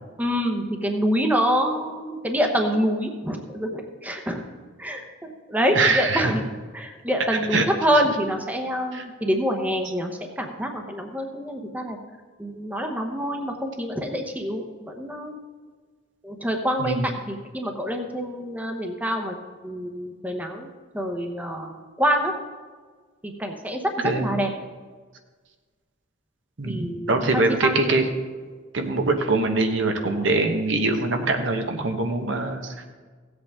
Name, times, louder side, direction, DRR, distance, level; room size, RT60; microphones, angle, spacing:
voice 1, 0.2-4.4 4.8-10.1 10.4-12.0 12.4-15.4 16.2-19.4 19.6-22.3 23.4-24.5 26.6-27.9, equal, 10° right, 4 dB, 0.8 m, -26 dB
voice 2, 5.7-6.3 7.5-7.6 8.9-9.0 16.8-17.1 24.0-24.3 26.6-28.1 28.7-32.8, right 3 dB, 70° right, 4 dB, 1.1 m, -23 dB
16.0 x 7.9 x 3.5 m, 1.5 s
head